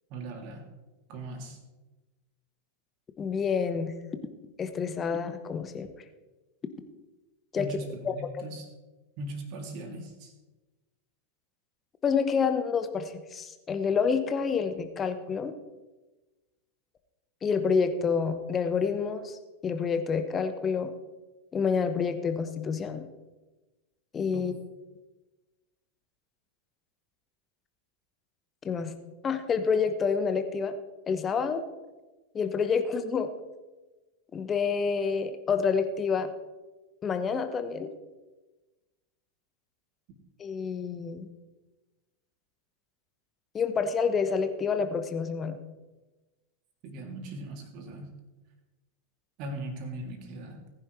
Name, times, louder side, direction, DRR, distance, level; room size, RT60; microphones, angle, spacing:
voice 1, 0.1-0.6 1.1-1.6 7.5-8.7 9.2-10.3 24.3-24.4 46.8-48.1 49.4-50.6, right 1 dB, 40° right, 2 dB, 3.0 m, -39 dB
voice 2, 3.2-3.9 4.6-5.9 7.5-7.7 8.0-8.1 12.0-15.5 17.4-19.4 19.6-20.9 21.5-23.1 24.1-24.5 28.6-28.9 29.2-30.7 31.1-31.6 32.3-33.3 34.3-36.3 37.0-37.9 40.4-41.3 43.5-45.6, left 6 dB, 20° left, 9 dB, 1.2 m, -28 dB
19.0 x 10.5 x 3.3 m, 1.2 s
figure-of-eight pair, 90°, 0 cm